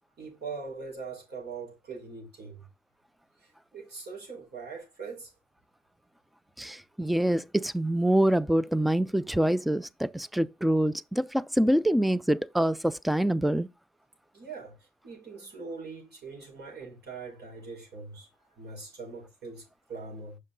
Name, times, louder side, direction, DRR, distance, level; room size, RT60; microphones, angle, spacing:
voice 1, 0.2-2.7 3.4-5.3 14.3-18.3 18.5-20.4, right 4 dB, 55° right, 4.9 m, -42 dB
voice 2, 6.6-13.7, right 1 dB, ahead, 0.4 m, -25 dB
6.5 x 5.6 x 3.9 m
cardioid pair, 90°, 20 cm